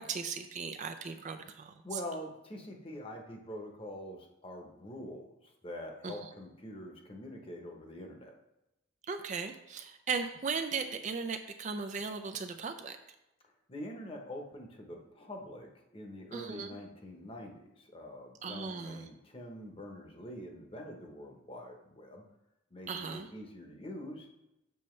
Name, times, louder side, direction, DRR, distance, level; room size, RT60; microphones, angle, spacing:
voice 1, 0.0-1.7 6.0-6.2 9.1-13.0 16.3-16.8 18.4-19.1 22.9-23.3, right 5 dB, 35° right, 7 dB, 0.4 m, -37 dB
voice 2, 1.8-8.3 13.7-22.2 22.7-24.3, left 1 dB, 25° left, 2 dB, 0.9 m, -45 dB
7.0 x 6.5 x 3.2 m, 0.92 s
head